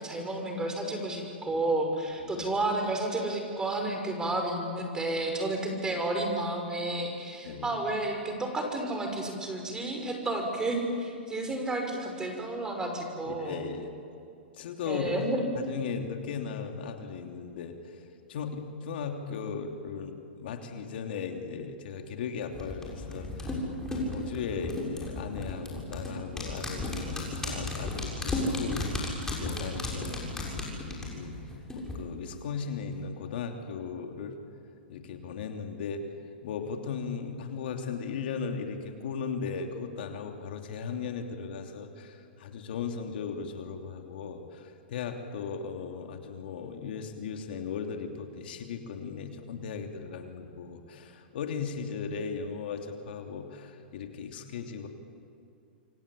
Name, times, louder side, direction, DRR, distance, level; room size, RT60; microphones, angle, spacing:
voice 1, 0.0-13.6 14.9-15.4, right 2 dB, 10° right, 3 dB, 5.6 m, -31 dB
voice 2, 7.4-7.8 13.3-13.9 14.6-15.0 15.5-17.7 18.3-23.6 23.9-29.1 29.4-31.4 31.7-34.4 34.9-36.0 36.4-54.9, left 6 dB, 65° left, 4 dB, 3.1 m, -37 dB
sound 1, 22.5-32.0 32.3-32.4, left 2 dB, 10° left, 6.6 m, -34 dB
27.5 x 24.0 x 8.7 m, 2.5 s
hypercardioid pair, 125°, 6 cm